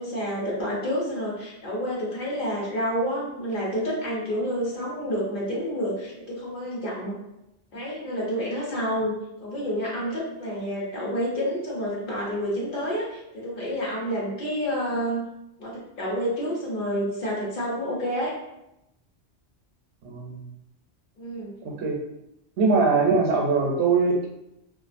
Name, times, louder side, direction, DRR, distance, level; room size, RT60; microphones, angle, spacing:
voice 1, 0.0-7.1 7.7-15.3 15.6-18.3 21.2-21.5, equal, 55° left, -5 dB, 0.9 m, -29 dB
voice 2, 20.0-20.5 21.6-22.0 22.6-24.3, right 4 dB, 80° right, 0 dB, 0.9 m, -22 dB
2.4 x 2.3 x 2.5 m, 0.86 s
omnidirectional pair, 1.1 m